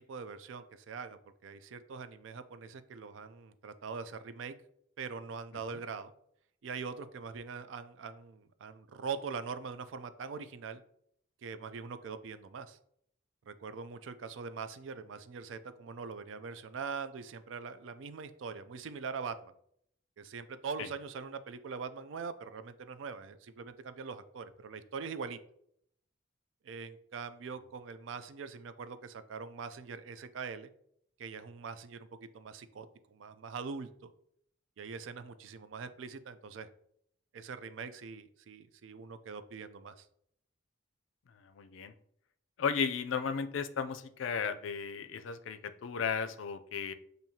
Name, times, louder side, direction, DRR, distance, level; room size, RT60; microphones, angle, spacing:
voice 1, 0.0-4.5 5.0-6.1 6.6-10.8 11.4-12.8 13.5-19.5 20.2-25.4 26.6-30.7 31.2-34.1 34.8-36.7 37.3-40.1, right 5 dB, 75° right, 11 dB, 0.4 m, -42 dB
voice 2, 41.4-41.9 42.6-46.9, left 6 dB, 80° left, 10 dB, 0.4 m, -35 dB
7.2 x 2.7 x 2.7 m, 0.71 s
head